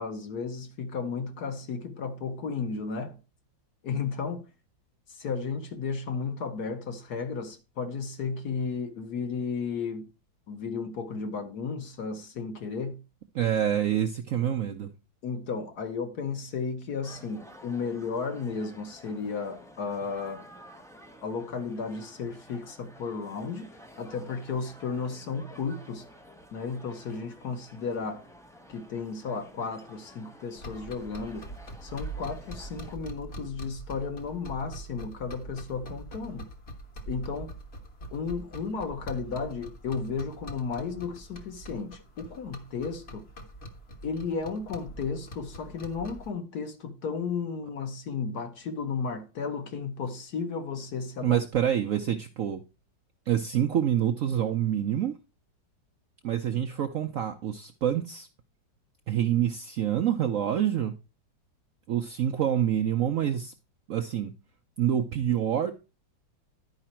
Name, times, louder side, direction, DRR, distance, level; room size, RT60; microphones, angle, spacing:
voice 1, 0.0-3.2 3.8-4.4 5.1-10.1 10.5-13.0 15.2-20.4 21.2-23.7 24.0-26.0 26.5-28.3 28.7-31.5 31.8-36.5 37.1-37.5 38.1-43.2 44.0-51.4, left 5 dB, 60° left, 1.6 m, -34 dB
voice 2, 13.3-14.9 51.2-52.6 53.3-55.2 56.2-58.3 59.1-61.0 61.9-63.5 63.9-64.3 64.8-65.7, right 10 dB, 65° right, 0.8 m, -27 dB
sound 1, 17.0-33.0, equal, 5° left, 0.4 m, -51 dB
sound 2, 30.6-46.3, right 1 dB, 35° left, 1.3 m, -43 dB
11.0 x 4.9 x 4.3 m
omnidirectional pair, 2.0 m